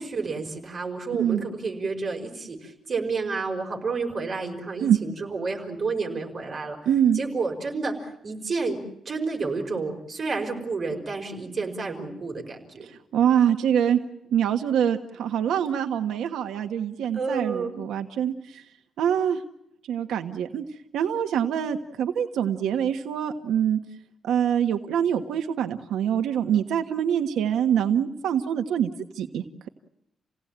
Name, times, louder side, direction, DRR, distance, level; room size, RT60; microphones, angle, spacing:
voice 1, 0.0-6.8 7.1-8.8 9.1-12.9 17.1-17.8, right 4 dB, 30° right, 3 dB, 5.3 m, -30 dB
voice 2, 6.8-7.2 12.8-14.0 14.3-18.6 19.0-19.4 19.9-20.6 20.9-23.8 24.2-29.7, right 9 dB, 85° right, 5 dB, 1.5 m, -24 dB
29.0 x 17.5 x 8.9 m, 0.81 s
cardioid pair, 165°, 0 cm